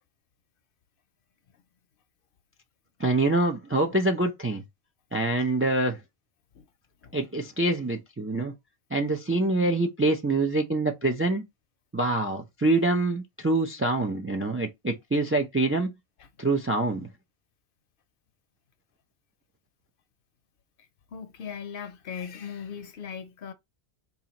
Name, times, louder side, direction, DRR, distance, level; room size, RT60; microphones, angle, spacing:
voice 1, 3.0-4.6 5.1-6.0 7.1-8.5 8.9-11.4 11.9-15.9 16.4-17.1, right 2 dB, 20° right, 0.3 m, -25 dB
voice 2, 21.1-23.5, left 7 dB, 65° left, 0.7 m, -38 dB
4.2 x 2.4 x 2.9 m
omnidirectional pair, 1.1 m